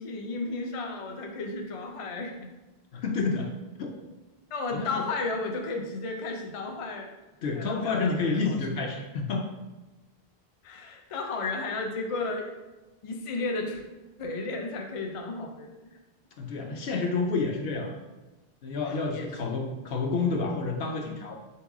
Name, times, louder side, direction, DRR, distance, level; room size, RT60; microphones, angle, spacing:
voice 1, 0.0-2.5 4.5-7.1 7.5-8.6 10.6-12.5 13.0-13.8 14.2-15.7 18.8-19.3, left 3 dB, 50° left, 2 dB, 0.4 m, -33 dB
voice 2, 2.9-3.5 3.8-4.0 4.7-5.1 7.4-9.5 16.4-18.0 18.6-21.3, left 4 dB, 70° left, 2 dB, 0.8 m, -29 dB
3.8 x 2.9 x 3.5 m, 1.1 s
omnidirectional pair, 1.1 m